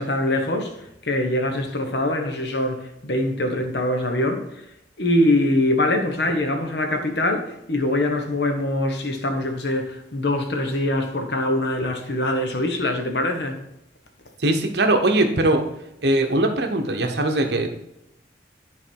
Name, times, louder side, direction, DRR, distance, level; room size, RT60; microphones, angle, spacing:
voice 1, 0.0-4.7 5.0-13.6, left 1 dB, 65° left, 5 dB, 1.2 m, -23 dB
voice 2, 14.4-15.7 16.0-17.7, right 1 dB, 65° right, 5 dB, 1.0 m, -20 dB
10.5 x 3.9 x 4.6 m, 0.83 s
head